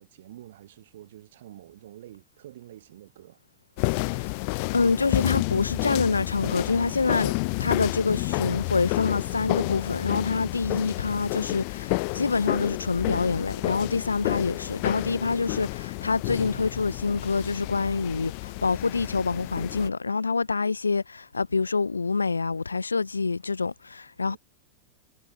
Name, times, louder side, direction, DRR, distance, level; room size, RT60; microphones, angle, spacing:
voice 1, 0.0-3.4 24.2-24.4, right 13 dB, 60° right, 6.2 m, -48 dB
sound 1, 3.8-19.9, left 31 dB, 45° left, 0.5 m, -30 dB
voice 2, 4.7-7.3 7.6-24.4, left 4 dB, 80° left, 0.9 m, -26 dB
figure-of-eight pair, 90°, 0 cm